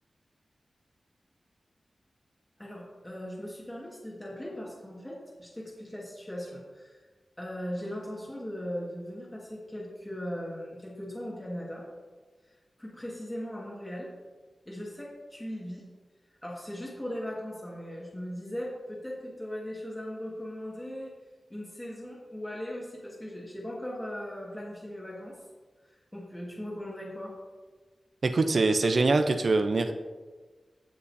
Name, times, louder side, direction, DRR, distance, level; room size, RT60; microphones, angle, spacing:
voice 1, 2.6-7.1 7.4-11.9 12.5-14.1 14.6-15.8 16.4-21.1 21.5-25.4 25.8-27.3, equal, 10° left, -5 dB, 1.6 m, -39 dB
voice 2, 28.2-29.9, right 3 dB, 55° right, 7 dB, 0.5 m, -24 dB
16.0 x 5.6 x 2.7 m, 1.4 s
wide cardioid pair, 130°, 0 cm